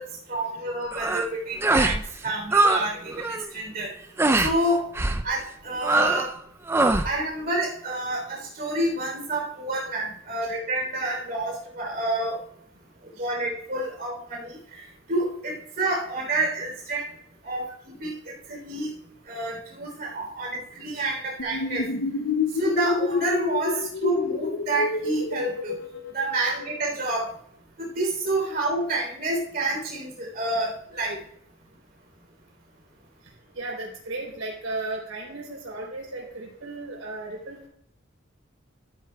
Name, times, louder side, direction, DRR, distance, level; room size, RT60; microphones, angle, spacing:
voice 1, 0.0-3.9 4.4-4.9 5.2-6.3 7.0-12.4 13.2-17.1 17.4-18.9 19.3-21.9 22.6-25.7 26.1-27.3 27.8-31.2, right 2 dB, 45° right, -1 dB, 3.4 m, -29 dB
sound 1, 0.9-1.3 1.6-2.0 2.3-2.8 3.1-3.5 4.2-4.5 4.9-5.2 5.8-6.3 6.7-7.1, right 2 dB, 10° right, 0.4 m, -22 dB
sound 2, 21.4-26.8, left 4 dB, 60° left, 0.5 m, -28 dB
voice 2, 33.5-37.7, right 2 dB, 90° right, -2 dB, 3.8 m, -35 dB
13.0 x 9.3 x 2.3 m, 0.68 s
head